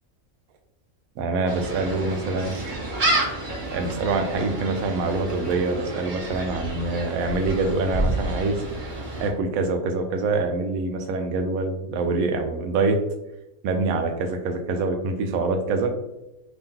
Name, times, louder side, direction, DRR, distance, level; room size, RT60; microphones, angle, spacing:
voice 1, 1.2-2.6 3.6-8.6 9.2-13.0 13.6-15.9, right 3 dB, 85° right, 5 dB, 1.0 m, -25 dB
Gull seagull, 1.5-9.3, right 1 dB, 40° right, 0.8 m, -29 dB
3.0 x 2.9 x 3.6 m, 0.91 s
omnidirectional pair, 1.5 m